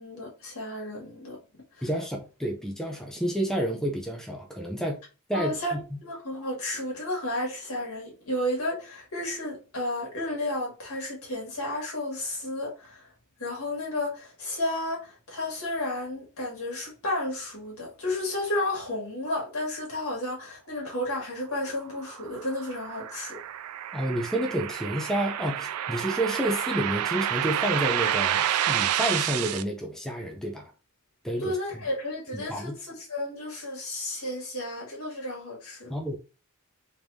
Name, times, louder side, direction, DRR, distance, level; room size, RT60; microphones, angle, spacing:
voice 1, 0.0-1.4 5.3-5.7 6.0-13.1 13.4-23.4 31.4-35.9, left 1 dB, 75° left, 1.7 m, -32 dB
voice 2, 1.8-5.0 5.3-6.0 23.9-30.7 31.2-31.8 32.3-32.8 35.9-36.2, right 1 dB, ahead, 0.5 m, -30 dB
sound 1, 21.8-29.6, right 11 dB, 85° right, 0.3 m, -29 dB
3.5 x 3.1 x 2.6 m
head